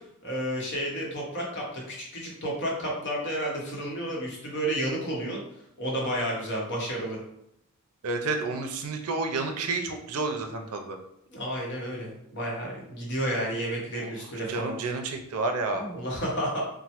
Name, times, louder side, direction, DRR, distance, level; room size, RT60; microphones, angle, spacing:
voice 1, 0.2-5.4 5.8-7.2 11.3-14.7 15.7-16.6, right 1 dB, 55° left, -2 dB, 0.9 m, -31 dB
voice 2, 8.0-11.0 14.0-14.1 14.5-15.9, right 3 dB, 75° right, 5 dB, 0.5 m, -30 dB
3.1 x 2.1 x 2.9 m, 0.78 s
head